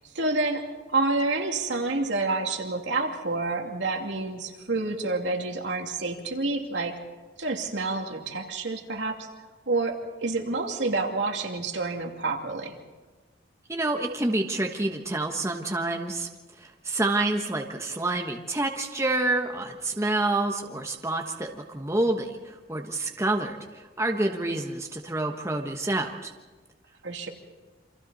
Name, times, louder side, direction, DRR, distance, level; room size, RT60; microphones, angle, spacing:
voice 1, 0.1-7.0 7.4-9.3 9.7-12.8 27.0-27.3, right 3 dB, 75° right, 2 dB, 2.6 m, -28 dB
voice 2, 13.7-16.3 16.6-26.3, right 2 dB, 15° right, 2 dB, 1.3 m, -28 dB
28.5 x 26.0 x 4.1 m, 1.3 s
head